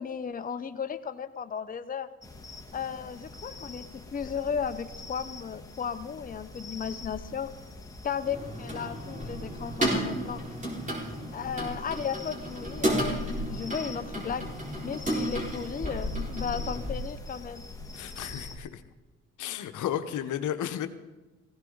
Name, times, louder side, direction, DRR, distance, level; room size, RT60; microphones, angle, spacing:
voice 1, 0.0-2.1 2.7-7.5 8.0-10.4 11.3-14.5 14.8-17.7, left 7 dB, 30° left, 9 dB, 0.7 m, -35 dB
sound 1, 2.2-18.6, left 2 dB, 10° left, 1.6 m, -41 dB
sound 2, 8.2-17.0, right 1 dB, 25° right, 4.5 m, -33 dB
voice 2, 17.9-18.8 19.4-20.9, left 10 dB, 80° left, 9 dB, 1.0 m, -33 dB
17.0 x 16.0 x 3.9 m, 1.1 s
cardioid pair, 90°, 30 cm